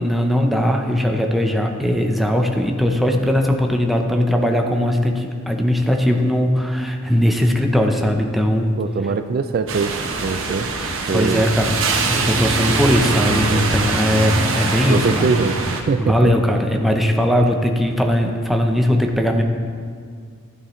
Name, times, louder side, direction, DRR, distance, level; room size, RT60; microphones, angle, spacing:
voice 1, 0.0-8.8 11.1-11.8 12.1-15.2 16.0-19.4, equal, ahead, 2 dB, 0.7 m, -19 dB
voice 2, 8.8-9.9 10.2-10.7 11.1-11.4 14.9-16.3, right 4 dB, 50° right, 9 dB, 0.3 m, -22 dB
sound 1, 9.7-15.8, right 3 dB, 70° right, 1.0 m, -22 dB
12.5 x 9.9 x 3.2 m, 2.1 s
head